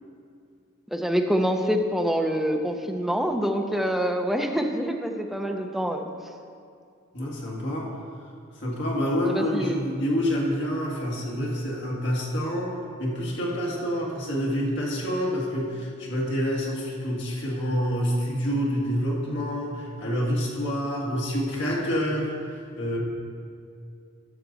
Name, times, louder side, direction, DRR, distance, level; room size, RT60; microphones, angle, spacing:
voice 1, 0.9-6.1 9.3-9.8, equal, ahead, 3 dB, 0.6 m, -26 dB
voice 2, 7.1-7.9 8.6-22.3 22.7-23.0, equal, 60° left, -4 dB, 2.1 m, -27 dB
12.0 x 6.8 x 4.0 m, 2.3 s
head